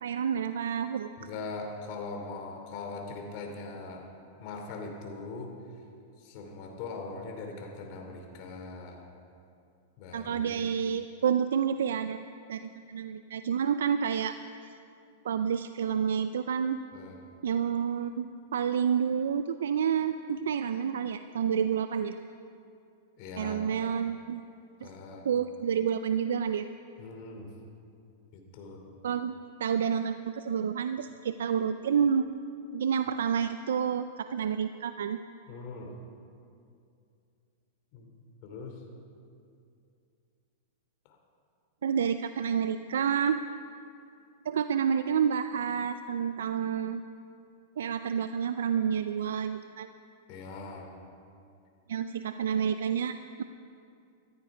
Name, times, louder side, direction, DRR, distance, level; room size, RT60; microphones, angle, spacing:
voice 1, 0.0-1.1 10.1-14.3 15.2-16.8 17.4-22.1 23.4-24.4 25.2-26.7 29.0-32.2 32.7-35.2 41.8-43.4 44.5-47.0 47.8-49.9 51.9-53.4, right 7 dB, 85° right, 10 dB, 0.4 m, -29 dB
voice 2, 1.2-4.1 4.4-5.5 6.2-9.0 10.0-10.6 16.9-17.2 23.2-23.7 24.8-25.3 27.0-27.5 28.3-28.8 35.5-35.9 37.9-38.1 38.4-38.8 50.3-50.9, left 3 dB, 50° left, 3 dB, 2.9 m, -41 dB
14.5 x 14.0 x 5.0 m, 2.5 s
hypercardioid pair, 125°, 0 cm